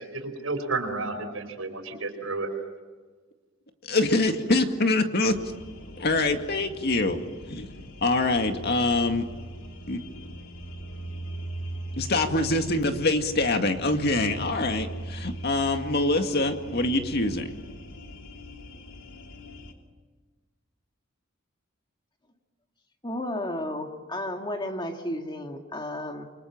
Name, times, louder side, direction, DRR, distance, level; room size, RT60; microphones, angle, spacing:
voice 1, 0.0-2.5, right 3 dB, 80° right, 6 dB, 4.8 m, -31 dB
voice 2, 3.8-5.4 6.0-7.2 7.5-9.3 9.9-10.0 12.0-17.5, left 2 dB, 50° left, 5 dB, 2.1 m, -25 dB
sound 1, 5.3-19.7, right 1 dB, 70° left, 3.3 m, -40 dB
voice 3, 23.0-26.2, left 1 dB, 20° left, 4 dB, 2.2 m, -33 dB
28.5 x 24.0 x 7.4 m, 1.4 s
head